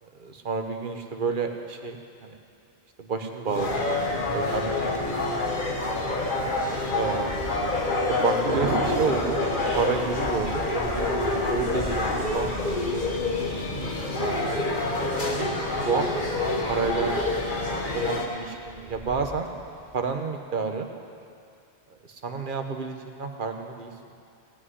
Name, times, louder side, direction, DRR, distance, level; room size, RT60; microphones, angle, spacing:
voice 1, 0.0-2.4 3.0-5.4 6.9-7.3 8.1-9.4 9.8-11.1 11.5-13.0 14.2-14.6 15.0-15.5 15.8-17.2 17.9-19.5 19.9-20.9 22.1-23.9, right 5 dB, 55° right, 5 dB, 1.2 m, -30 dB
sound 1, 3.5-18.3, left 2 dB, 50° left, 1.4 m, -27 dB
Wind, 7.2-20.1, right 1 dB, 20° right, 2.6 m, -43 dB
sound 2, 8.5-10.7, right 3 dB, 75° right, 1.5 m, -31 dB
17.0 x 6.2 x 9.5 m, 2.6 s
omnidirectional pair, 1.1 m